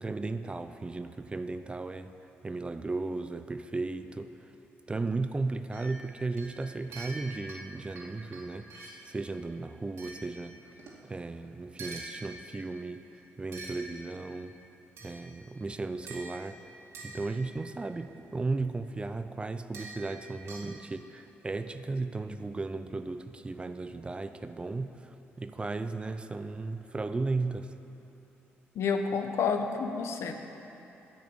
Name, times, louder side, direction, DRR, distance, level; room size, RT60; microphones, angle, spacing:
voice 1, 0.0-2.1 2.4-4.5 4.9-10.7 11.0-14.6 15.0-16.6 17.0-27.7, right 3 dB, 20° right, 10 dB, 0.5 m, -35 dB
sound 1, 5.7-9.1 10.0-11.1 11.8-12.7 13.5-14.4 15.0-15.6 16.1-17.7 19.7-20.7, right 2 dB, 65° right, 2.3 m, -46 dB
voice 2, 28.7-30.4, left 5 dB, 70° left, 6 dB, 0.9 m, -29 dB
10.5 x 6.4 x 8.5 m, 3.0 s
cardioid pair, 85°, 5 cm